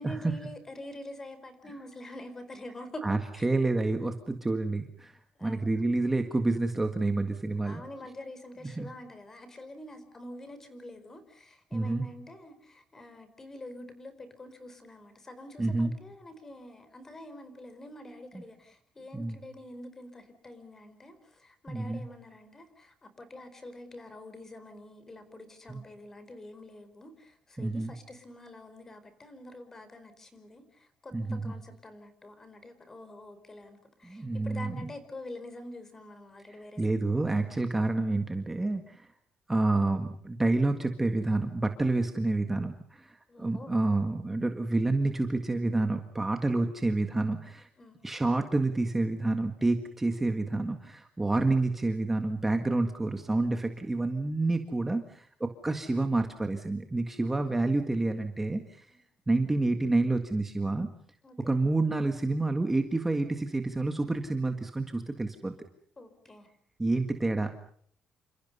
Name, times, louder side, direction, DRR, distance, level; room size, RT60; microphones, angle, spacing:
voice 1, 0.0-3.0 3.3-3.5 5.4-5.8 7.6-36.8 37.1-37.2 43.3-43.8 47.8-48.0 61.2-61.6 66.0-66.5, left 1 dB, 20° left, 11 dB, 4.7 m, -46 dB
voice 2, 3.0-7.8 8.6-8.9 11.7-12.0 15.6-15.9 18.3-18.4 19.1-19.4 21.7-22.0 25.7-25.8 27.6-27.9 31.1-31.5 34.0-34.9 36.8-39.1 39.5-47.7 48.0-58.9 59.3-60.9 61.5-65.6 66.8-67.5, right 2 dB, 10° right, 6 dB, 1.7 m, -28 dB
29.0 x 27.0 x 5.5 m, 0.62 s
cardioid pair, 155°, 2 cm